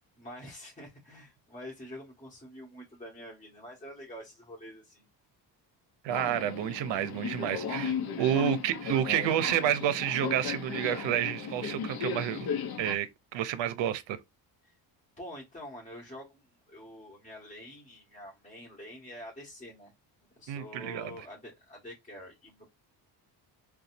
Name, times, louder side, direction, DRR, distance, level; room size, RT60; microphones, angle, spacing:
voice 1, 0.2-5.0 8.2-8.5 14.6-14.8 15.2-19.9 20.3-22.7, equal, 15° left, 1.8 m, -46 dB
voice 2, 6.0-12.5 12.8-13.1 13.3-14.2 20.5-21.1, right 11 dB, 70° right, 0.7 m, -29 dB
Subway metro underground, 6.1-12.9, left 6 dB, 50° left, 0.8 m, -36 dB
4.0 x 2.4 x 2.6 m
cardioid pair, 95°, 46 cm